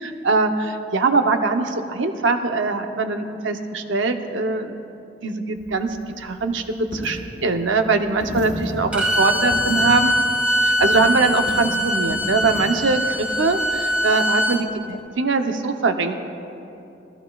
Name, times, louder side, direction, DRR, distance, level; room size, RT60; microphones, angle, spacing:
voice 1, 0.0-4.9 5.2-10.2 10.6-16.2, right 3 dB, 85° right, 6 dB, 0.8 m, -22 dB
Coin (dropping), 5.6-14.1, equal, 85° left, 1.3 m, -35 dB
Bowed string instrument, 8.9-14.6, equal, 5° right, 1.2 m, -22 dB
19.5 x 14.5 x 2.3 m, 2.8 s
head